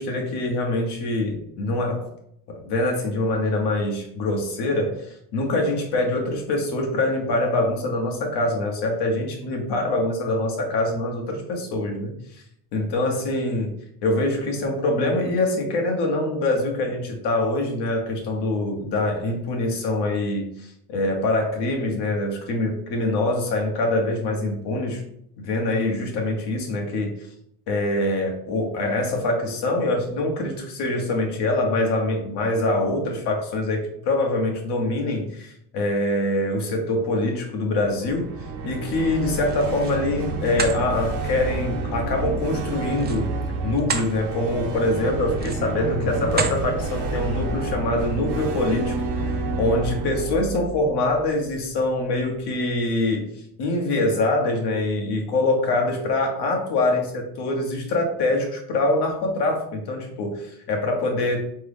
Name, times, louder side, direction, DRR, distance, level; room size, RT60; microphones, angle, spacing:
voice 1, 0.0-2.1 2.5-12.4 12.7-13.7 14.0-25.0 25.4-27.2 27.7-38.3 38.6-43.3 43.6-53.2 53.6-61.4, left 2 dB, 75° left, 1 dB, 1.4 m, -24 dB
sound 1, 37.9-51.9, right 3 dB, 85° right, 1.0 m, -29 dB
sound 2, 39.5-40.0 40.4-40.8 42.9-44.1 44.6-44.7 45.3-45.8 46.3-46.6, right 5 dB, 25° right, 0.5 m, -29 dB
3.8 x 3.5 x 3.5 m, 0.71 s
cardioid pair, 110°, 41 cm